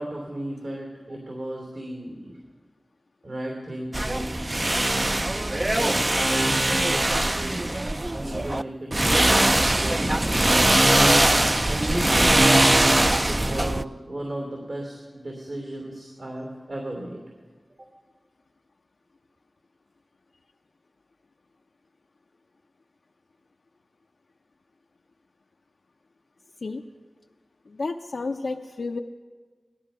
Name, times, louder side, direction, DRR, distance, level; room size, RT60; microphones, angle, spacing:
voice 1, 0.0-2.4 3.2-4.4 5.5-7.1 7.4-7.8 8.2-9.5 9.8-10.2 11.7-12.9 13.2-17.2, right 1 dB, 75° right, 0 dB, 2.9 m, -34 dB
sound 1, 3.9-8.6 8.9-13.8, right 1 dB, 30° right, 0.4 m, -21 dB
voice 2, 27.7-29.0, left 3 dB, 90° left, 1 dB, 0.6 m, -31 dB
17.5 x 13.0 x 5.6 m, 1.4 s
wide cardioid pair, 60°, 0 cm